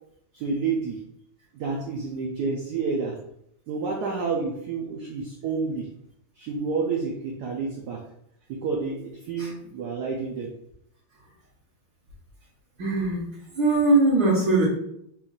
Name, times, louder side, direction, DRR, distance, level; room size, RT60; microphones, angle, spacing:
voice 1, 0.3-1.0 1.5-3.2 3.7-5.9 6.4-8.0 8.5-10.5 12.8-13.2, right 4 dB, 75° right, 0 dB, 0.9 m, -29 dB
voice 2, 12.8-13.2 13.6-14.6, right 2 dB, 60° right, -9 dB, 1.8 m, -20 dB
4.3 x 2.5 x 3.9 m, 0.75 s
omnidirectional pair, 2.4 m